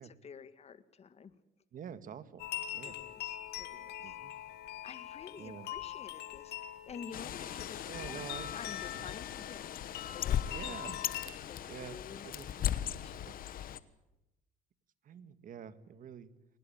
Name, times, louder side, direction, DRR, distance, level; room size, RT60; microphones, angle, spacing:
voice 1, 0.0-1.3 2.8-4.2 4.8-9.6 10.1-10.9 11.5-12.3 12.8-13.8, left 6 dB, 40° left, 12 dB, 1.6 m, -50 dB
voice 2, 1.7-2.5 2.7-3.0 4.0-4.3 5.4-5.7 7.9-8.5 8.9-9.1 10.5-11.0 11.7-12.5 13.2-13.4 15.0-16.3, right 8 dB, 55° right, 13 dB, 1.9 m, -47 dB
sound 1, 2.4-11.3, left 12 dB, 75° left, 2.2 m, -43 dB
Bird, 7.1-13.8, left 10 dB, 55° left, 1.3 m, -38 dB
21.5 x 20.0 x 8.8 m, 0.93 s
cardioid pair, 110°, 17 cm